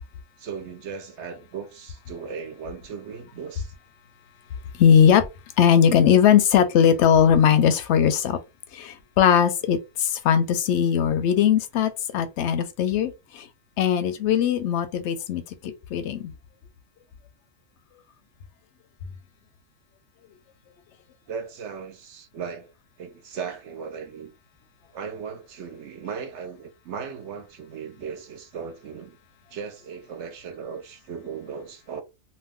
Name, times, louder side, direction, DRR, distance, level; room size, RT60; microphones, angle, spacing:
voice 1, 0.4-3.7 21.3-22.7 23.0-24.3 24.9-29.2 29.5-32.0, right 6 dB, 65° right, 0.8 m, -37 dB
voice 2, 4.8-5.3 5.6-8.4 8.7-13.5 13.8-16.3, left 8 dB, 65° left, 0.8 m, -20 dB
2.5 x 2.2 x 3.5 m
omnidirectional pair, 1.4 m